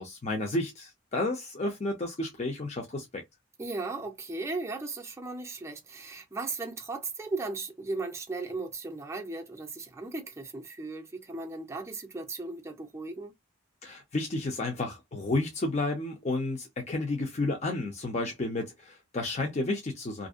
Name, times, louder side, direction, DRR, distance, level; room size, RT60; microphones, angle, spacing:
voice 1, 0.0-3.2 13.8-20.3, left 2 dB, 35° left, 0.6 m, -31 dB
voice 2, 3.6-13.3, right 3 dB, 15° right, 0.5 m, -36 dB
2.5 x 2.0 x 2.4 m
head